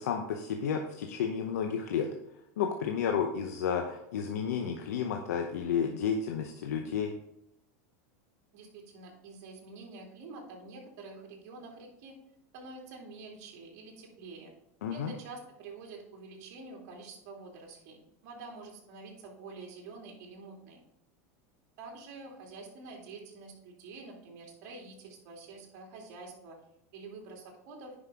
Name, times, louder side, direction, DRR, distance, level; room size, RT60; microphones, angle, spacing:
voice 1, 0.0-2.1 2.6-7.1 14.8-15.1, left 7 dB, 85° left, 3 dB, 0.8 m, -31 dB
voice 2, 8.5-12.2 12.5-14.5 14.9-20.8 21.8-26.6 26.9-27.9, right 3 dB, 55° right, 0 dB, 2.7 m, -47 dB
9.8 x 5.5 x 3.6 m, 0.80 s
supercardioid pair, 125°, 8 cm